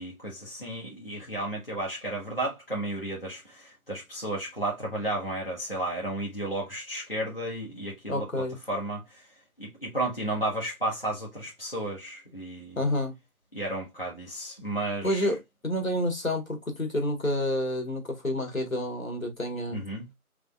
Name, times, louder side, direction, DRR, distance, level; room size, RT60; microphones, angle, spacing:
voice 1, 0.0-9.2 9.6-12.8 13.5-15.3 19.7-20.1, right 1 dB, 40° left, 1.0 m, -33 dB
voice 2, 8.1-8.6 12.8-13.1 15.0-15.4 15.6-19.8, left 1 dB, 65° left, 1.4 m, -29 dB
3.6 x 3.2 x 2.2 m
figure-of-eight pair, 180°, 44 cm